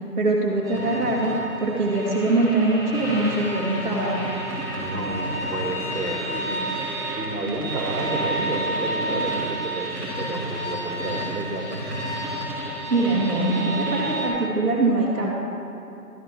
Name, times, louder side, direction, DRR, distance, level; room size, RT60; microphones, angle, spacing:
voice 1, 0.2-4.3 12.9-15.3, right 2 dB, 60° right, -7 dB, 2.1 m, -23 dB
sound 1, 0.6-14.3, right 1 dB, ahead, 1.3 m, -30 dB
voice 2, 4.8-11.9, right 2 dB, 85° right, 1 dB, 2.2 m, -31 dB
13.0 x 6.2 x 6.0 m, 2.9 s
hypercardioid pair, 170°, 47 cm